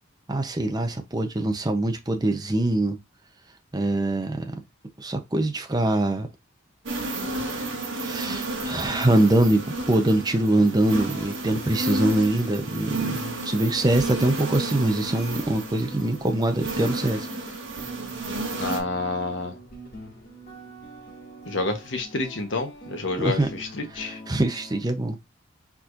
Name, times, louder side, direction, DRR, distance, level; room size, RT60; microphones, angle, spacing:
voice 1, 0.3-3.0 3.7-4.5 5.0-6.3 8.0-17.3 23.2-23.5 24.0-25.2, right 1 dB, 20° right, 0.7 m, -23 dB
sound 1, 6.9-18.8, right 2 dB, 80° right, 1.3 m, -32 dB
sound 2, 7.2-24.8, right 2 dB, 50° left, 2.4 m, -43 dB
voice 2, 18.6-19.5 21.5-24.2, left 2 dB, 65° left, 1.1 m, -29 dB
4.7 x 4.3 x 2.5 m
head